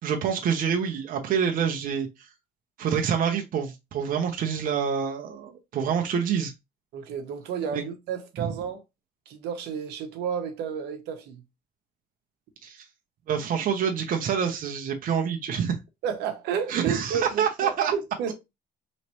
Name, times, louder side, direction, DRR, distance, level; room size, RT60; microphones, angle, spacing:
voice 1, 0.0-2.1 2.8-6.5 7.7-7.8 8.4-8.5 12.6-12.8 13.3-15.8 16.7-17.9, right 7 dB, 55° right, 0.8 m, -27 dB
voice 2, 6.9-8.8 9.3-11.4 16.0-18.3, right 7 dB, 80° right, 1.0 m, -31 dB
4.1 x 3.1 x 3.0 m
cardioid pair, 110°, 17 cm